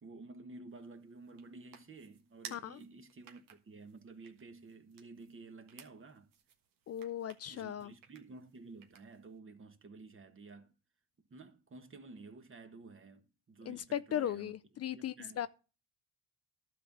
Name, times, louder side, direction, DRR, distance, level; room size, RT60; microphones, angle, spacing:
voice 1, 0.0-6.3 7.5-10.7 11.3-14.5 14.9-15.5, right 3 dB, 35° right, 1.5 m, -52 dB
sound 1, 0.7-9.4, right 7 dB, 70° right, 1.4 m, -58 dB
voice 2, 6.9-7.9 13.7-15.5, left 10 dB, 45° left, 0.5 m, -37 dB
12.0 x 4.1 x 7.2 m
supercardioid pair, 70°, 35 cm